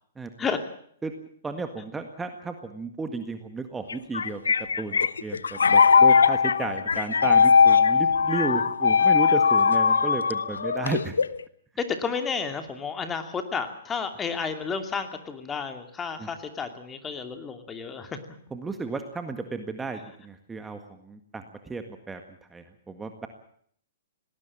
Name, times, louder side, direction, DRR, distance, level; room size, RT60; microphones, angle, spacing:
voice 1, 1.4-4.4 4.8-11.1 16.2-16.3 18.5-22.2 22.5-23.3, right 4 dB, 10° right, 7 dB, 1.8 m, -33 dB
sound 1, 3.9-11.4, left 6 dB, 85° left, 0.9 m, -20 dB
voice 2, 11.8-18.2, left 5 dB, 15° left, 7 dB, 2.7 m, -31 dB
19.0 x 19.0 x 8.7 m, 0.63 s
hypercardioid pair, 130°, 0 cm